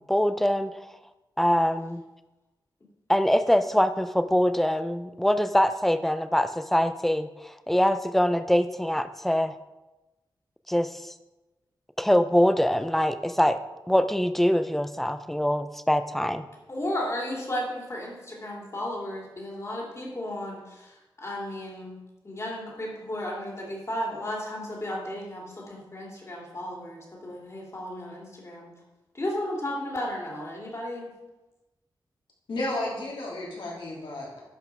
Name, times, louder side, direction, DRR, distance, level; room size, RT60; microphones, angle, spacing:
voice 1, 0.1-0.7 1.4-2.0 3.1-9.5 10.7-11.1 12.0-13.6 13.9-16.5, equal, 5° left, 10 dB, 0.5 m, -23 dB
voice 2, 16.7-22.0 22.2-28.7 29.1-31.1, left 1 dB, 35° left, -2 dB, 2.6 m, -34 dB
voice 3, 32.5-34.4, left 1 dB, 75° left, -4 dB, 3.1 m, -32 dB
11.5 x 5.5 x 4.6 m, 1.0 s
wide cardioid pair, 115°, 9 cm